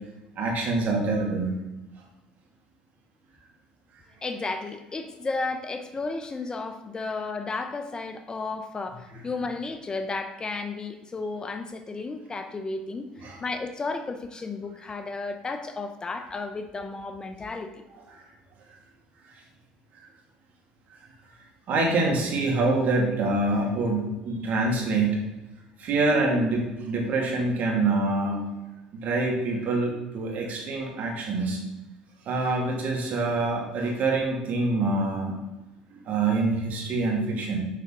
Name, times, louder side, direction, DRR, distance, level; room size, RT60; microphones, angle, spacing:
voice 1, 0.4-1.5 13.2-13.4 21.7-25.2 25.8-28.4 28.9-31.6 32.3-35.4 35.9-37.6, right 2 dB, 55° right, 0 dB, 2.2 m, -25 dB
voice 2, 4.2-13.1 13.4-17.8, left 3 dB, 25° left, 8 dB, 0.7 m, -33 dB
6.7 x 5.8 x 3.8 m, 1.0 s
supercardioid pair, 80°, 3 cm